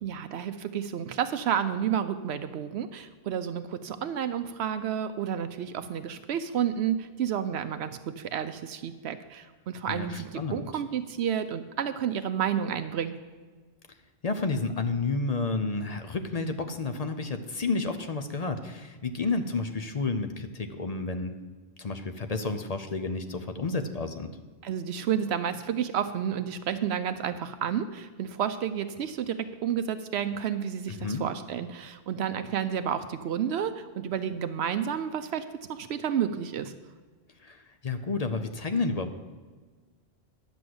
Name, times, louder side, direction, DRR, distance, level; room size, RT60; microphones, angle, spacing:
voice 1, 0.0-13.1 24.6-36.7, right 8 dB, 80° right, 10 dB, 0.9 m, -31 dB
voice 2, 9.9-10.6 14.2-21.4 21.8-24.3 30.9-31.2 37.4-39.1, left 3 dB, 40° left, 8 dB, 0.7 m, -31 dB
10.5 x 6.1 x 7.8 m, 1.4 s
omnidirectional pair, 1.1 m